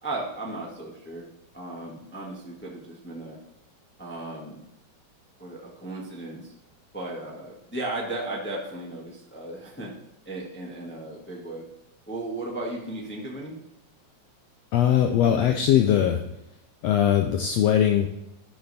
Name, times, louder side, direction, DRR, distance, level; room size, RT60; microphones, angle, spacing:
voice 1, 0.0-1.2 1.5-3.4 4.0-4.6 5.4-6.5 6.9-9.9 10.2-11.6 12.1-13.6, right 2 dB, 15° left, -3 dB, 0.4 m, -35 dB
voice 2, 14.7-16.2 16.8-18.2, left 10 dB, 80° left, 5 dB, 1.5 m, -21 dB
12.0 x 5.2 x 4.2 m, 0.86 s
omnidirectional pair, 3.6 m